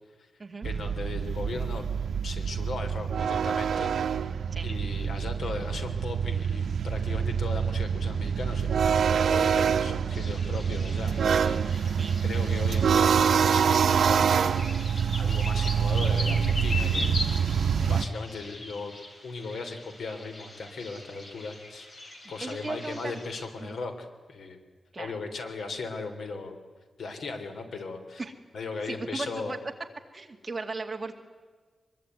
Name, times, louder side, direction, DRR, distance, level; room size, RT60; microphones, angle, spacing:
voice 1, 0.6-1.8 2.2-4.2 4.6-14.7 15.1-17.2 17.9-19.0 19.2-24.6 25.0-26.6 27.0-28.2 28.5-29.6, left 3 dB, 85° left, 6 dB, 3.6 m, -38 dB
sound 1, 0.6-18.1, right 7 dB, 85° right, 0.9 m, -26 dB
sound 2, 10.1-23.5, left 2 dB, 40° left, 3.4 m, -40 dB
voice 2, 22.4-23.1 23.6-23.8 24.9-25.1 28.2-28.3 28.8-29.6 30.1-31.1, right 3 dB, 25° right, 4 dB, 2.3 m, -36 dB
24.0 x 23.0 x 9.4 m, 1.4 s
wide cardioid pair, 170°, 0 cm